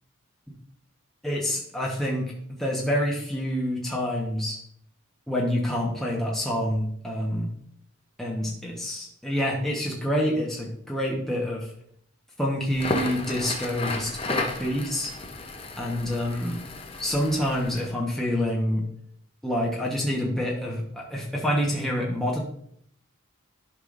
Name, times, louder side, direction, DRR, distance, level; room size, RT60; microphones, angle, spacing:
voice 1, 1.2-4.6 5.3-7.5 8.2-11.7 12.4-15.1 15.8-16.6 17.0-18.8 19.4-22.4, equal, ahead, -4 dB, 1.1 m, -27 dB
Crackle, 12.7-17.9, left 2 dB, 25° left, 0.7 m, -33 dB
11.5 x 5.7 x 2.6 m, 0.69 s
head